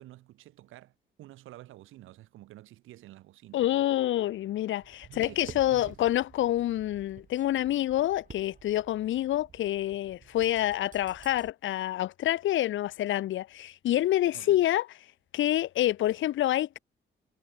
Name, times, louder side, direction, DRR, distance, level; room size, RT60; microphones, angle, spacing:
voice 1, 0.0-3.8 5.1-6.1 14.3-14.6, right 15 dB, 90° right, 2.6 m, -50 dB
voice 2, 3.5-14.9 15.3-16.8, left 13 dB, 75° left, 1.3 m, -27 dB
Tap, 4.8-11.5, right 6 dB, 40° right, 3.7 m, -51 dB
cardioid pair, 90°, 20 cm